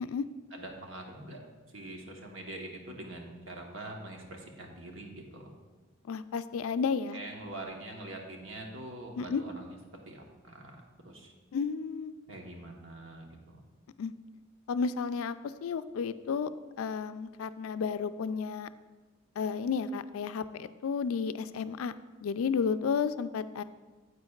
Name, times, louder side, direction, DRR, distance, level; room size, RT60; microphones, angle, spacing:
voice 1, 0.5-1.4 1.7-5.5 7.1-9.8 10.1-10.7 11.0-11.3 12.3-13.6, right 1 dB, 65° right, 1 dB, 1.1 m, -44 dB
voice 2, 6.1-7.2 9.2-9.4 11.5-12.1 14.0-14.1 14.7-15.4 15.6-16.5 16.8-18.7 19.4-21.9 22.2-23.6, left 5 dB, 85° left, 13 dB, 0.4 m, -32 dB
9.6 x 8.2 x 2.4 m, 1.3 s
head